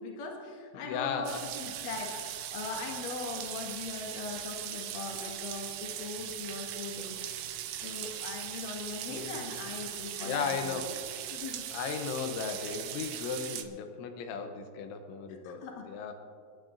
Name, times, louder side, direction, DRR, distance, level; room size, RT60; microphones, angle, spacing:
voice 1, 0.0-1.3 1.6-10.8 11.3-11.6 15.4-15.9, left 4 dB, 55° left, 0 dB, 3.0 m, -40 dB
voice 2, 0.7-1.5 9.1-9.5 10.2-10.9 11.7-16.1, left 6 dB, 85° left, 5 dB, 3.3 m, -36 dB
sound 1, 1.3-13.6, right 11 dB, 85° right, 3.2 m, -39 dB
28.5 x 11.5 x 2.6 m, 2.4 s
omnidirectional pair, 5.3 m